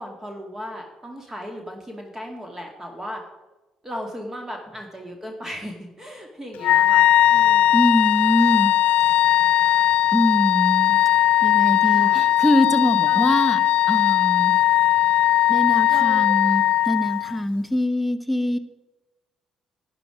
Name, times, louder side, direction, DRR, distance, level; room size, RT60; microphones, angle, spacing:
voice 1, 0.0-3.2 3.8-7.8 11.8-12.3 13.0-13.4 15.9-16.3, equal, 20° right, 2 dB, 2.2 m, -36 dB
Wind instrument woodwind instrument, 6.6-17.4, left 13 dB, 70° left, 0.3 m, -18 dB
voice 2, 7.7-8.7 10.1-11.0 11.4-13.6 13.9-14.6 15.5-18.6, left 1 dB, ahead, 11 dB, 1.1 m, -23 dB
11.0 x 9.7 x 5.0 m, 1.1 s
hypercardioid pair, 50°, 2 cm